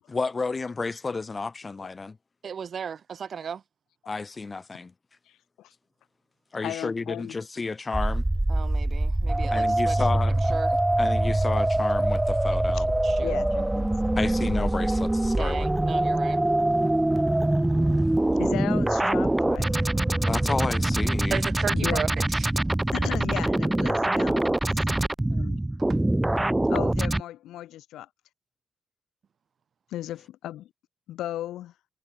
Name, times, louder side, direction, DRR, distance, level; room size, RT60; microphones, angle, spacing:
voice 1, 0.1-2.2 4.1-4.9 6.5-8.2 9.5-10.4 11.0-12.9 14.2-15.8 20.3-21.4, left 4 dB, 30° left, 2.8 m, -31 dB
voice 2, 2.4-3.6 8.5-10.0 10.5-10.7 13.0-13.4 15.4-16.4 19.8-20.0 21.3-22.5 25.9-26.0, right 7 dB, 50° right, 1.0 m, -35 dB
voice 3, 5.3-5.7 6.6-7.4 8.6-8.7 12.5-12.8 13.2-14.2 18.4-19.8 21.7-22.0 22.9-24.9 25.3-25.6 26.7-28.1 29.9-30.7 31.1-31.7, left 13 dB, 85° left, 5.3 m, -36 dB
sound 1, 7.9-27.2, right 1 dB, 10° right, 0.6 m, -24 dB
cardioid pair, 90°, 0 cm